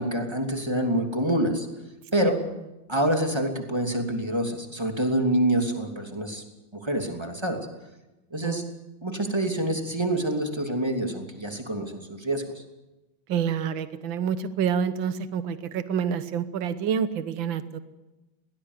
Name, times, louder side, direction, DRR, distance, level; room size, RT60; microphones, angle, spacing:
voice 1, 0.0-1.7 2.1-2.4 2.9-6.4 6.7-7.6 8.3-8.6 9.0-12.4, right 1 dB, 15° right, 4 dB, 2.9 m, -26 dB
voice 2, 8.4-8.7 13.3-17.8, right 7 dB, 80° right, 12 dB, 1.8 m, -28 dB
21.5 x 19.0 x 8.2 m, 1.0 s
omnidirectional pair, 2.1 m